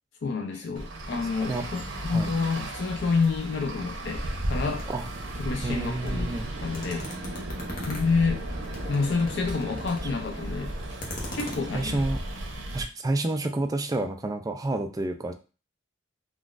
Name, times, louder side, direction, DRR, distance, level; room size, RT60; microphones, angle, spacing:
voice 1, 0.2-4.2 4.5-4.9 5.4-6.3 6.6-7.0 7.9-8.4 8.9-10.7 11.3-12.0, left 4 dB, 65° left, 3 dB, 0.4 m, -28 dB
Traffic noise roadway noise, 0.7-12.8, right 1 dB, 85° right, 0.8 m, -35 dB
sound 1, 3.2-11.6, left 1 dB, 50° left, 0.8 m, -42 dB
voice 2, 5.6-6.5 11.7-12.2 12.7-15.3, right 2 dB, 20° right, 5 dB, 0.3 m, -29 dB
3.7 x 2.4 x 2.4 m, 0.34 s
head